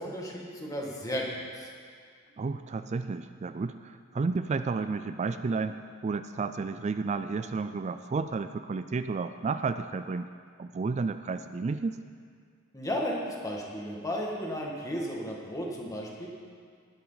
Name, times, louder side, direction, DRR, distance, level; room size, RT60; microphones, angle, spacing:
voice 1, 0.0-1.7 12.7-16.3, equal, 15° left, -2 dB, 1.9 m, -34 dB
voice 2, 2.4-10.3 10.6-12.0, right 4 dB, 35° right, 10 dB, 0.3 m, -32 dB
19.0 x 10.5 x 4.0 m, 2.1 s
head